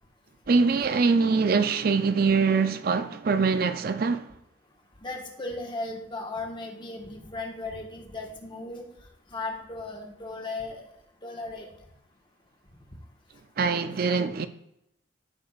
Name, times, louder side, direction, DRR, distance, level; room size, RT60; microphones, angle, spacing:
voice 1, 0.5-4.3 13.6-14.5, right 4 dB, 50° right, 0.4 m, -23 dB
voice 2, 5.0-8.8 9.3-10.8 11.2-11.7, left 2 dB, 25° left, 1.3 m, -36 dB
13.5 x 6.2 x 2.4 m
head